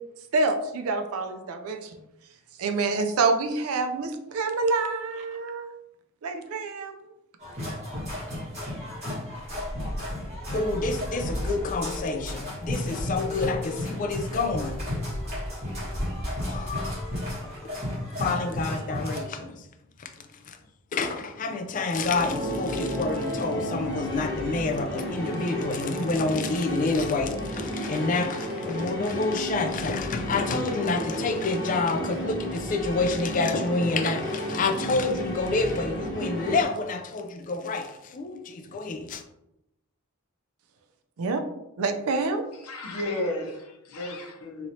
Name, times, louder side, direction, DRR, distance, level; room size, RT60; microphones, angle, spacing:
voice 1, 0.3-2.0 2.6-5.7 6.2-7.0 41.2-41.4 41.8-42.5, right 3 dB, 70° right, 0.4 m, -27 dB
sound 1, 7.4-19.2, left 1 dB, 30° right, 1.4 m, -33 dB
voice 2, 10.5-14.8 16.5-17.1 17.6-17.7 18.2-19.6 20.0-20.6 20.9-39.2, left 3 dB, 35° left, 0.3 m, -28 dB
sound 2, 22.0-36.6, equal, ahead, 1.3 m, -33 dB
voice 3, 42.6-44.7, left 1 dB, 80° left, 0.7 m, -33 dB
3.0 x 2.9 x 2.7 m
head